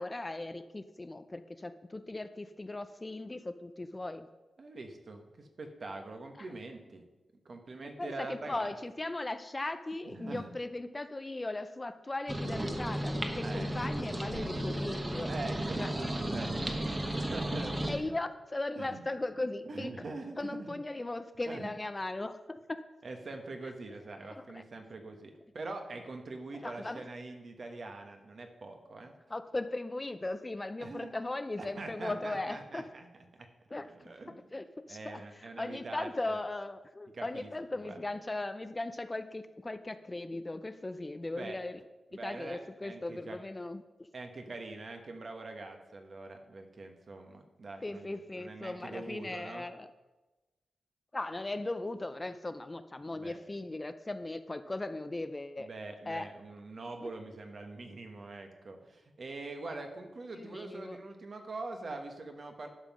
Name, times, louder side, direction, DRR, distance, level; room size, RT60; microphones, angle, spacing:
voice 1, 0.0-4.3 6.4-6.5 8.0-15.3 15.8-15.9 17.9-19.9 20.4-22.8 23.6-23.7 24.3-24.6 26.6-27.1 29.3-32.9 33.7-34.1 34.5-41.8 42.2-44.1 47.8-49.9 51.1-55.7 56.1-56.3 57.0-57.1 60.3-61.0, left 2 dB, 20° left, 10 dB, 0.5 m, -38 dB
voice 2, 4.6-7.0 7.4-8.7 10.0-10.5 13.4-13.7 15.2-18.1 18.7-19.0 19.7-20.7 21.5-21.7 23.0-29.1 30.8-31.1 31.6-33.1 33.9-34.4 34.9-36.4 37.1-38.0 41.3-41.6 42.1-43.4 44.1-49.7 53.1-53.4 55.6-62.7, right 3 dB, 50° right, 4 dB, 1.3 m, -44 dB
sound 1, 12.3-18.0, right 1 dB, 20° right, 1.1 m, -34 dB
11.5 x 5.6 x 6.1 m, 1.1 s
wide cardioid pair, 105°, 0 cm